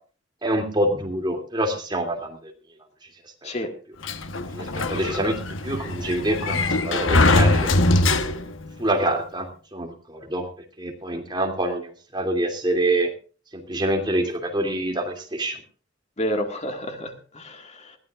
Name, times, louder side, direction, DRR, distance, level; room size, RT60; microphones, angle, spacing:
voice 1, 0.4-2.4 4.5-5.4 5.6-7.7 8.8-10.4 10.8-13.1 13.5-15.6, right 1 dB, 25° right, 3 dB, 2.7 m, -26 dB
Sliding door, 4.0-8.7, left 2 dB, 80° left, 1.1 m, -22 dB
voice 2, 16.2-18.0, equal, 35° left, 4 dB, 1.8 m, -30 dB
21.0 x 15.5 x 2.5 m, 0.38 s
head